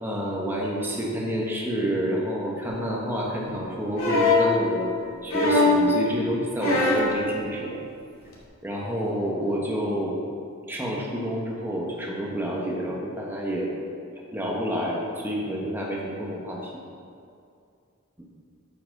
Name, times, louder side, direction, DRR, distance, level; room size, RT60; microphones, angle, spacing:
voice 1, 0.0-4.9 5.2-7.8 8.6-10.2 10.7-13.7 14.3-16.7, equal, 10° right, -3 dB, 1.3 m, -29 dB
sound 1, 4.0-4.5 5.3-5.8 6.6-7.1 8.3-8.4, left 2 dB, 85° left, 2.4 m, -20 dB
8.5 x 5.9 x 6.6 m, 2.4 s
head